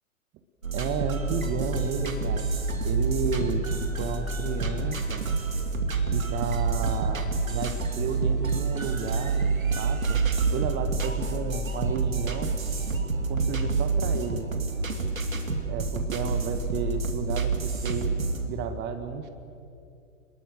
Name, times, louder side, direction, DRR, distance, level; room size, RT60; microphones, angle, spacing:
sound 1, 0.6-18.5, right 4 dB, 75° right, 2.8 m, -28 dB
voice 1, 0.7-2.5 2.8-5.2 6.1-10.2 10.5-12.5 13.3-14.5 15.7-18.1 18.5-19.3, right 6 dB, 25° right, 8 dB, 1.5 m, -32 dB
27.5 x 21.0 x 7.8 m, 2.5 s
figure-of-eight pair, 110°, 41 cm